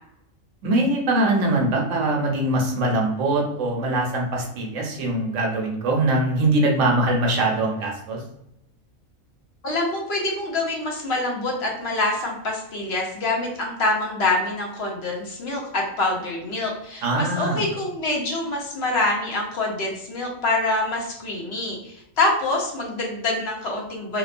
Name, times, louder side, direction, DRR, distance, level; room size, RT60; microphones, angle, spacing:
voice 1, 0.6-8.2 17.0-17.6, right 2 dB, 70° right, 0 dB, 0.9 m, -22 dB
voice 2, 9.6-24.2, left 2 dB, 55° left, -1 dB, 0.8 m, -25 dB
2.8 x 2.0 x 2.4 m, 0.82 s
omnidirectional pair, 1.4 m